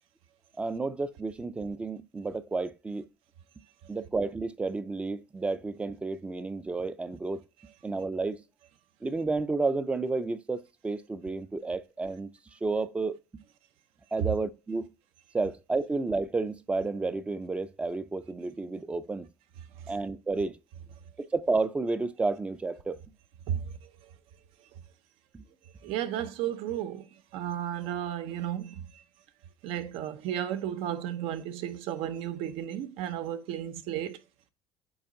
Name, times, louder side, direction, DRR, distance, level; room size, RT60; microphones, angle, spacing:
voice 1, 0.6-3.1 3.9-7.4 7.8-8.4 9.0-13.4 14.1-14.8 15.3-19.3 19.9-20.6 21.2-23.0 25.3-25.4, right 3 dB, 10° right, 0.4 m, -31 dB
voice 2, 23.5-24.1 25.8-29.0 29.6-34.2, right 10 dB, 75° right, 0.7 m, -34 dB
8.7 x 3.1 x 3.8 m
cardioid pair, 155°, 10 cm